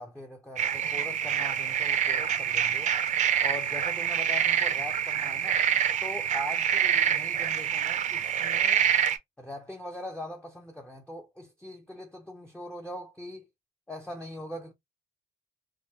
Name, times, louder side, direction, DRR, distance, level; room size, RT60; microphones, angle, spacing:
voice 1, 0.0-3.0 3.4-5.6 6.0-8.9 9.4-13.5 13.9-14.7, left 1 dB, 5° left, 0.5 m, -41 dB
sound 1, 0.6-9.2, right 8 dB, 45° right, 0.5 m, -26 dB
3.5 x 2.1 x 2.8 m
cardioid pair, 110°, 17 cm